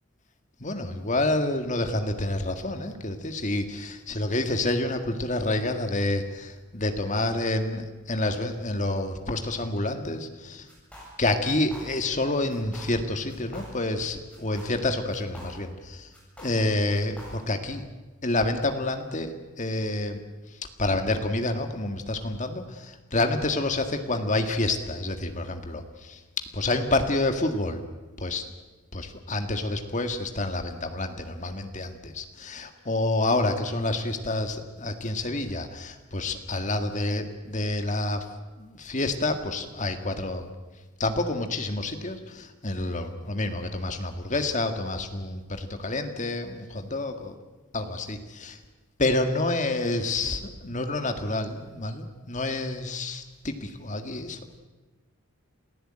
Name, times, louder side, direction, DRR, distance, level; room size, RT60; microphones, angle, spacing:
voice 1, 0.6-10.7 11.2-16.1 16.4-17.9 18.2-20.2 20.8-26.2 26.5-27.8 28.2-28.4 28.9-38.3 38.6-40.5 41.0-47.4 47.7-48.6 49.0-54.4, left 2 dB, 35° left, 7 dB, 2.0 m, -28 dB
sound 1, 10.7-11.2 11.5-12.2 12.5-13.0 13.3-14.0 14.3-15.8 16.1-17.6, equal, 5° left, 7.6 m, -46 dB
28.0 x 15.5 x 8.9 m, 1.2 s
head